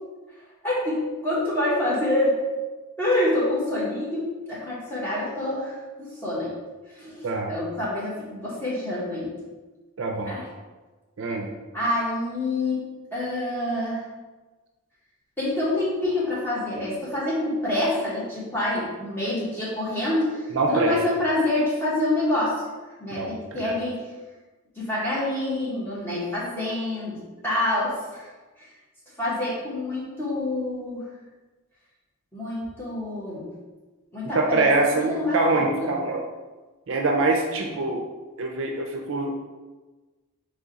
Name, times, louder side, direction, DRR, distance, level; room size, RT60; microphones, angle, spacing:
voice 1, 0.6-2.4 3.0-6.6 6.9-9.3 10.3-10.4 11.7-12.8 13.1-14.0 15.4-22.5 23.0-24.0 24.8-28.3 28.6-28.7 29.2-31.0 32.3-33.5 34.1-35.4 35.8-35.9, left 1 dB, 10° left, -9 dB, 1.3 m, -27 dB
voice 2, 10.0-10.4 11.2-11.5 20.5-20.9 23.1-23.7 34.3-36.3 36.9-38.0 38.4-39.4, right 2 dB, 60° right, 2 dB, 0.5 m, -24 dB
3.6 x 3.3 x 4.0 m, 1.2 s
head